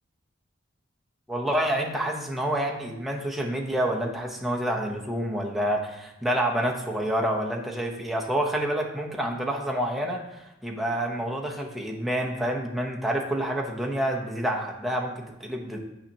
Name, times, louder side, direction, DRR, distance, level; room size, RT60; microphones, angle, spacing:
voice 1, 1.3-15.8, right 1 dB, ahead, -1 dB, 0.8 m, -28 dB
8.7 x 5.7 x 2.9 m, 0.94 s
head